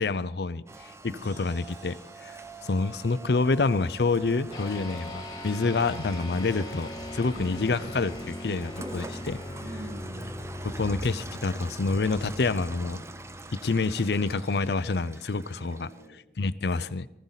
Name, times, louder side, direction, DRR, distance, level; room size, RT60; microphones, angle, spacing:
voice 1, 0.0-2.0 2.2-2.4 2.6-9.4 10.6-13.0 13.5-15.9 16.4-17.1, left 3 dB, 65° left, 15 dB, 0.6 m, -27 dB
Rain, 0.7-16.1, right 2 dB, 15° right, 0.5 m, -43 dB
voice 2, 1.1-1.5 7.3-7.7 9.6-10.4 15.5-16.2, right 1 dB, 50° right, 3 dB, 2.2 m, -44 dB
sound 1, 1.2-4.9, right 1 dB, 80° right, 7.6 m, -58 dB
sound 2, 4.5-14.2, left 2 dB, 25° left, 2.5 m, -41 dB
19.5 x 14.5 x 4.1 m, 0.83 s
head